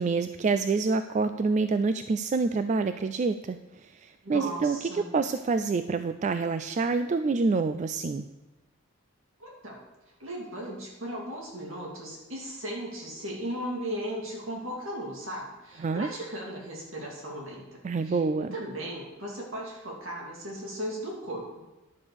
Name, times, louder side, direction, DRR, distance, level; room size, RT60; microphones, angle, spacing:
voice 1, 0.0-8.2 15.8-16.1 17.8-18.5, right 4 dB, 35° right, 10 dB, 0.3 m, -27 dB
voice 2, 4.2-5.1 9.4-9.8 10.2-17.8 18.0-18.2 18.5-21.6, equal, 70° right, -2 dB, 3.1 m, -37 dB
10.5 x 4.9 x 7.0 m, 1.1 s
head